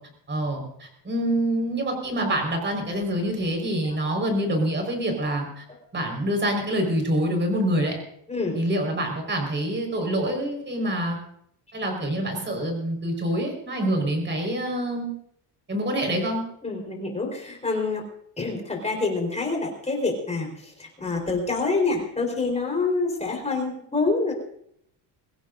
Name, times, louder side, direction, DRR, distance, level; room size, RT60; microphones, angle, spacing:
voice 1, 0.3-5.6 5.9-8.0 8.5-11.2 11.7-15.1 15.7-16.4, right 1 dB, 25° right, 3 dB, 4.7 m, -26 dB
voice 2, 16.6-18.0 18.4-24.3, left 3 dB, 15° left, 1 dB, 4.2 m, -26 dB
23.5 x 16.5 x 2.6 m, 0.69 s
cardioid pair, 150°, 44 cm